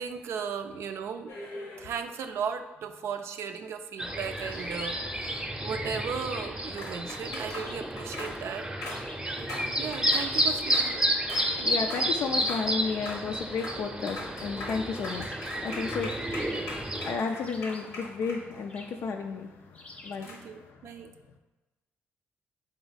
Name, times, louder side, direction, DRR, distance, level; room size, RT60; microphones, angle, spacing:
voice 1, 0.0-1.3 1.8-9.0 9.4-11.0 11.6-11.8 20.3-21.1, right 6 dB, 75° right, 7 dB, 0.4 m, -36 dB
sound 1, 1.3-2.1 4.2-5.1 6.8-10.9 11.3-11.5 11.8-12.1 12.4-12.7 12.9-13.2 13.5-13.8 14.1-18.8 20.2-20.4, left 2 dB, 85° left, 0.9 m, -41 dB
sound 2, 4.0-17.2, equal, 15° right, 0.6 m, -31 dB
sound 3, 4.5-5.1 6.1-6.7 7.5-8.0 8.9-9.4 10.1-10.7 11.4-12.0 12.8-13.3 15.0-15.6 16.3-16.9 17.4-18.0 18.7-19.0 19.7-20.3, left 2 dB, 25° left, 0.6 m, -49 dB
voice 2, 11.1-20.9, left 5 dB, 70° left, 3 dB, 0.4 m, -33 dB
3.9 x 3.5 x 4.0 m, 1.1 s
cardioid pair, 65°, 5 cm